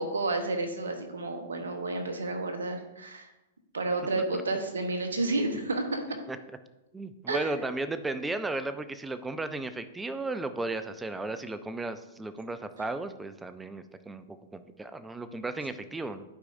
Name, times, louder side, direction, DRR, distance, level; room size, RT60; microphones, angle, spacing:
voice 1, 0.0-3.3 3.7-6.0 7.3-7.5, right 2 dB, 80° right, 5 dB, 1.1 m, -31 dB
voice 2, 6.9-16.2, right 2 dB, 10° right, 10 dB, 0.5 m, -35 dB
11.5 x 4.8 x 2.6 m, 0.98 s
hypercardioid pair, 110°, 0 cm